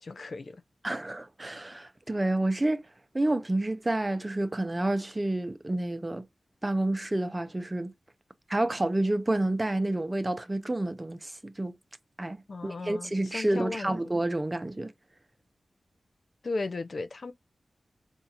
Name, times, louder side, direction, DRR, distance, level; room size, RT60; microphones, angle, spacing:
voice 1, 0.0-0.6 12.5-14.0 16.4-17.3, left 3 dB, 60° left, 0.4 m, -36 dB
voice 2, 0.8-2.9 3.1-6.3 6.6-7.9 8.5-11.8 12.2-14.9, right 1 dB, 25° right, 0.6 m, -29 dB
4.4 x 2.4 x 2.7 m
cardioid pair, 45°, 0 cm